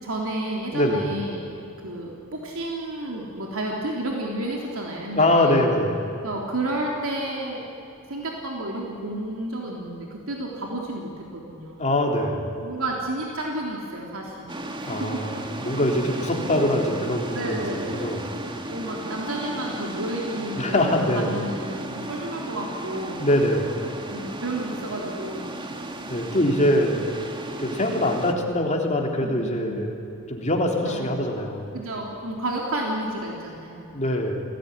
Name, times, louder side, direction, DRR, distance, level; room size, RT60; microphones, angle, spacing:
voice 1, 0.0-1.4 1.8-5.6 6.2-7.7 8.0-11.8 12.6-14.5 14.8-15.3 17.3-18.1 18.7-23.2 24.1-25.5 29.2-29.8 30.9-31.0 31.7-33.9, right 1 dB, 65° right, -1 dB, 3.6 m, -31 dB
voice 2, 0.7-1.1 5.2-6.0 11.8-12.5 14.9-18.2 20.6-21.3 23.2-23.8 26.1-27.0 27.6-29.9 30.3-31.7 33.9-34.4, left 1 dB, 35° left, 1 dB, 3.6 m, -23 dB
sound 1, 14.5-28.3, right 1 dB, 20° right, 1.8 m, -35 dB
29.0 x 19.0 x 9.9 m, 2.7 s
head